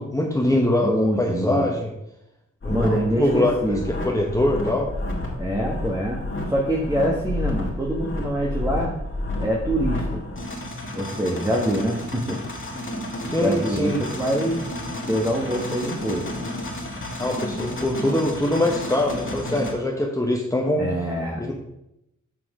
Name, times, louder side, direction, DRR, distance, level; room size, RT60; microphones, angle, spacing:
voice 1, 0.0-1.9 2.6-3.8 4.0-4.9 13.2-14.0 17.2-20.9 21.4-21.5, left 1 dB, 10° left, -1 dB, 1.0 m, -23 dB
voice 2, 0.8-1.7 2.7-3.9 5.4-6.2 6.5-8.9 9.4-10.2 10.9-12.4 13.4-14.7 15.1-16.2 20.8-21.4, equal, 10° right, -2 dB, 1.3 m, -25 dB
sound 1, 2.6-19.7, left 1 dB, 40° left, 1.8 m, -31 dB
6.1 x 6.0 x 4.8 m, 0.85 s
cardioid pair, 65°, 30 cm